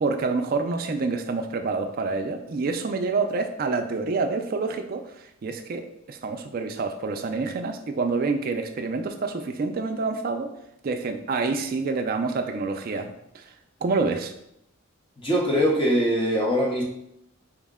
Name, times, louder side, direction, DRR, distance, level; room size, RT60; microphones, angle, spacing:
voice 1, 0.0-5.0 5.4-10.5 10.8-13.4 13.8-14.3, right 4 dB, 40° right, 6 dB, 0.3 m, -27 dB
voice 2, 15.2-16.8, equal, 25° left, -2 dB, 0.7 m, -22 dB
4.8 x 2.1 x 3.5 m, 0.79 s
head